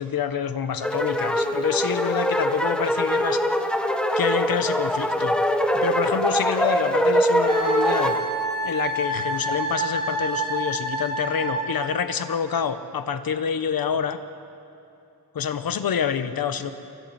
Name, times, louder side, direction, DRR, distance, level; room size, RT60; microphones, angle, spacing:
voice 1, 0.0-3.4 4.2-5.4 5.7-8.2 8.6-14.2 15.3-16.7, left 7 dB, 60° left, 10 dB, 1.3 m, -27 dB
sound 1, 0.8-8.2, equal, ahead, 1.4 m, -23 dB
Wind instrument woodwind instrument, 7.5-11.9, right 2 dB, 25° right, 6.3 m, -28 dB
28.5 x 23.0 x 4.4 m, 2.9 s
wide cardioid pair, 115°, 40 cm